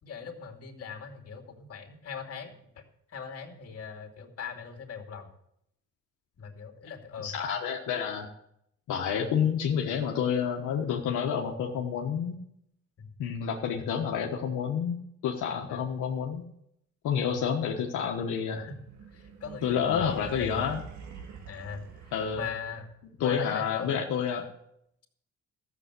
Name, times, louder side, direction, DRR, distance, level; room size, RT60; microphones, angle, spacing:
voice 1, 0.0-2.5 3.1-5.3 6.4-7.3 13.0-13.1 15.6-15.8 18.6-18.8 19.1-20.6 21.5-21.8 22.3-22.9 23.2-24.1, left 6 dB, 50° left, 3 dB, 2.7 m, -40 dB
voice 2, 7.2-8.3 8.9-12.4 13.2-15.0 15.2-16.4 17.0-18.6 19.6-20.8 22.1-22.5 23.2-24.5, left 7 dB, 85° left, 0 dB, 1.4 m, -29 dB
sound 1, 18.6-22.9, right 6 dB, 70° right, 2.2 m, -45 dB
14.0 x 7.3 x 8.3 m, 0.75 s
cardioid pair, 90°, 30 cm